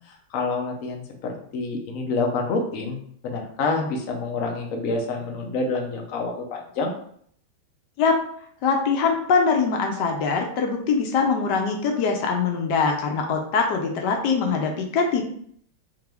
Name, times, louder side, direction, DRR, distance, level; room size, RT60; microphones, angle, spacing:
voice 1, 0.3-6.9, left 3 dB, 85° left, 1 dB, 0.7 m, -27 dB
voice 2, 8.6-15.2, left 5 dB, 70° left, 3 dB, 1.0 m, -22 dB
3.6 x 2.9 x 3.4 m, 0.63 s
omnidirectional pair, 2.3 m